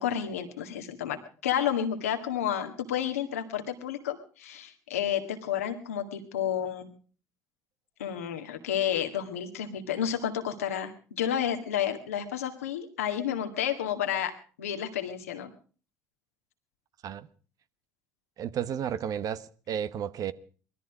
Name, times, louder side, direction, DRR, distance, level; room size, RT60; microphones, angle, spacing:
voice 1, 0.0-6.9 8.0-10.9 11.2-15.5, left 9 dB, 90° left, 1.9 m, -31 dB
voice 2, 18.4-20.3, right 9 dB, 55° right, 1.1 m, -32 dB
20.0 x 13.5 x 5.0 m
hypercardioid pair, 60°, 7 cm